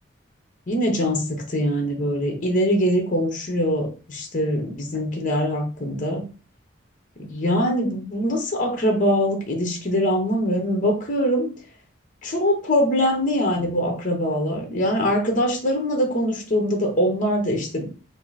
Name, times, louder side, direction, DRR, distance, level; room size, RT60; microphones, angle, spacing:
voice 1, 0.7-6.2 7.2-11.5 12.2-17.9, equal, 40° left, 3 dB, 1.0 m, -23 dB
5.5 x 2.1 x 4.2 m, 0.36 s
head